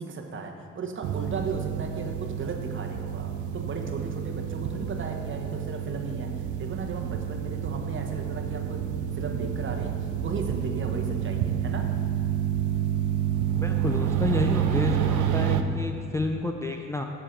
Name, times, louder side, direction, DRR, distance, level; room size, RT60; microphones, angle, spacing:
voice 1, 0.0-11.9, right 4 dB, 40° right, 3 dB, 1.0 m, -36 dB
sound 1, 1.0-15.6, right 9 dB, 80° right, 0.5 m, -29 dB
voice 2, 13.6-17.1, left 2 dB, 10° left, 2 dB, 0.4 m, -30 dB
7.3 x 6.7 x 4.4 m, 2.4 s
cardioid pair, 90°, 30 cm